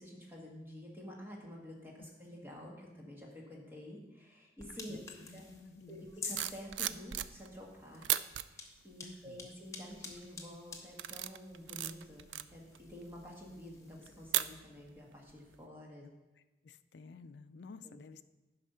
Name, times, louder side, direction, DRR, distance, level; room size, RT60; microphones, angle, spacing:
voice 1, 0.0-5.0 5.3-5.5 5.9-8.1 8.5-16.1 17.8-18.0, equal, 10° right, -2 dB, 1.7 m, -49 dB
sound 1, 4.6-14.3, left 4 dB, 15° left, 0.8 m, -51 dB
voice 2, 4.7-6.1 9.0-9.5 16.0-16.1 16.6-18.2, left 4 dB, 65° left, 11 dB, 0.4 m, -53 dB
sound 2, 6.1-7.6 8.0-8.4 9.1-9.4 9.9-10.3 10.7-15.0 15.3-15.6, right 13 dB, 80° right, 0.3 m, -37 dB
9.7 x 5.6 x 5.5 m, 1.1 s
head